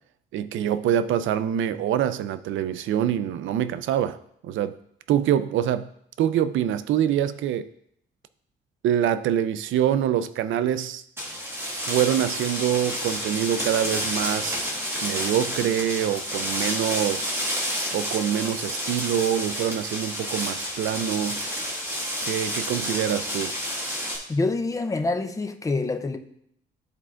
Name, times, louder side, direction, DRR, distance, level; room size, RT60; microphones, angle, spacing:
voice 1, 0.3-4.2 4.4-4.8 5.1-5.9 6.2-7.7 8.8-11.0 11.9-17.4 17.9-21.4 22.2-23.5, right 10 dB, 80° right, 0.4 m, -25 dB
sound 1, 11.2-24.2, equal, 10° right, 1.5 m, -30 dB
voice 2, 24.3-26.2, left 3 dB, 15° left, 0.5 m, -26 dB
12.5 x 4.4 x 2.5 m
cardioid pair, 150°, 20 cm